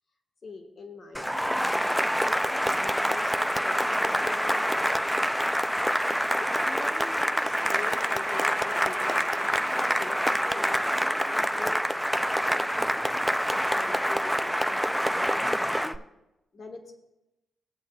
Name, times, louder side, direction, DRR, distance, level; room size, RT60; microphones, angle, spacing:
voice 1, 0.4-4.9 5.2-5.6 5.8-13.0 13.4-16.0 16.5-17.0, left 3 dB, 45° left, 3 dB, 1.4 m, -44 dB
Cheering / Applause, 1.1-16.0, equal, ahead, 0.3 m, -26 dB
19.0 x 8.1 x 2.2 m, 0.94 s
cardioid pair, 120°, 0 cm